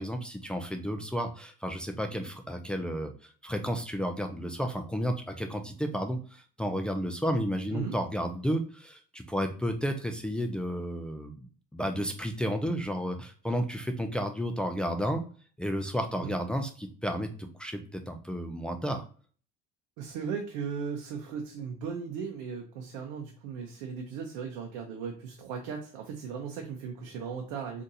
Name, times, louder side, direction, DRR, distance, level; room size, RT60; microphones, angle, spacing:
voice 1, 0.0-3.1 3.4-11.4 11.7-15.2 15.6-19.0, equal, 5° left, 4 dB, 0.3 m, -32 dB
voice 2, 20.0-27.8, right 6 dB, 85° right, 2 dB, 0.6 m, -37 dB
3.9 x 2.6 x 2.6 m, 0.42 s
cardioid pair, 120°, 20 cm